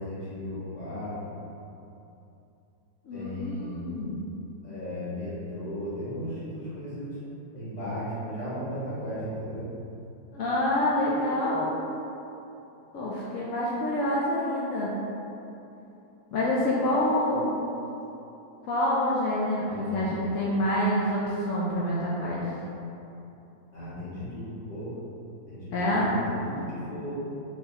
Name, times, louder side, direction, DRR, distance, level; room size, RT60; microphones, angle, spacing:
voice 1, 0.0-1.4 3.1-4.1 4.6-7.2 7.5-9.7 19.6-20.0 23.7-24.9 25.5-27.1, equal, 25° left, -11 dB, 1.4 m, -36 dB
voice 2, 3.0-4.2 10.3-11.7 12.9-14.9 16.3-17.5 18.7-22.4 25.7-26.1, left 1 dB, 75° left, -6 dB, 0.7 m, -27 dB
4.3 x 3.9 x 2.8 m, 2.8 s
omnidirectional pair, 2.0 m